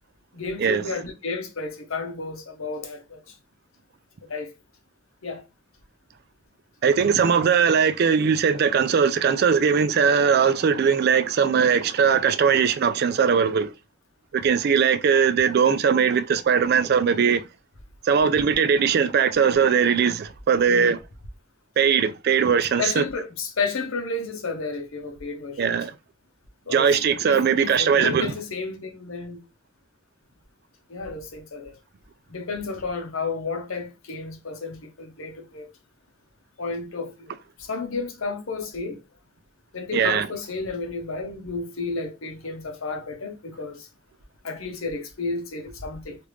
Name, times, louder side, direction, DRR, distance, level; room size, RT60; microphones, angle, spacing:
voice 1, 0.3-3.2 4.3-4.5 5.2-5.4 20.7-20.9 22.8-25.7 26.7-26.9 27.2-29.4 30.9-31.7 32.3-35.7 36.6-37.3 37.6-39.0 39.7-43.9 44.4-46.2, left 4 dB, 90° left, 0.8 m, -32 dB
voice 2, 6.8-13.7 14.3-17.4 18.0-21.0 21.8-23.0 25.6-25.9 26.7-28.3 39.9-40.3, right 6 dB, 50° right, 0.3 m, -20 dB
3.3 x 2.5 x 3.0 m
head